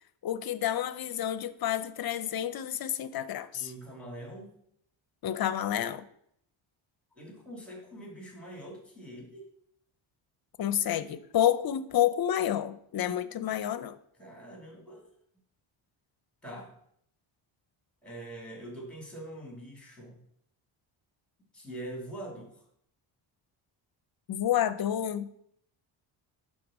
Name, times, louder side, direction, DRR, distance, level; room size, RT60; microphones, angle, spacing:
voice 1, 0.2-3.7 5.2-6.0 10.6-14.0 24.3-25.3, left 11 dB, 50° left, 13 dB, 0.6 m, -29 dB
voice 2, 3.5-4.5 7.1-9.5 14.2-15.1 16.4-16.7 18.0-20.2 21.5-22.7, right 1 dB, ahead, 0 dB, 2.6 m, -44 dB
11.5 x 3.8 x 6.2 m, 0.70 s
cardioid pair, 140°, 49 cm